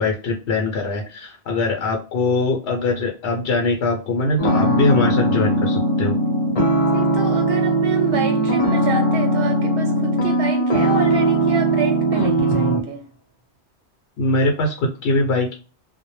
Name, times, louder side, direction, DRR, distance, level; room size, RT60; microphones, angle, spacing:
voice 1, 0.0-6.2 14.2-15.5, left 2 dB, 70° left, 1 dB, 0.8 m, -22 dB
sound 1, 4.4-12.8, right 1 dB, 40° left, 0.7 m, -19 dB
voice 2, 6.9-13.0, right 4 dB, 85° right, 5 dB, 1.0 m, -28 dB
2.1 x 2.1 x 3.0 m, 0.33 s
omnidirectional pair, 1.1 m